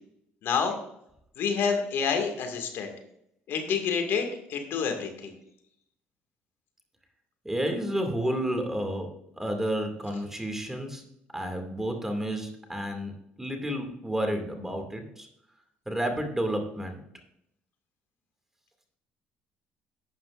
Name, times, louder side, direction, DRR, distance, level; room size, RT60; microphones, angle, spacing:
voice 1, 0.4-0.7 1.4-2.9 3.5-4.2 4.5-5.3, left 6 dB, 65° left, 5 dB, 2.0 m, -28 dB
voice 2, 7.4-9.1 9.4-11.0 11.3-13.1 13.4-15.3 15.9-17.0, right 1 dB, 10° right, 4 dB, 2.2 m, -31 dB
11.5 x 9.2 x 2.5 m, 0.74 s
supercardioid pair, 80°, 4 cm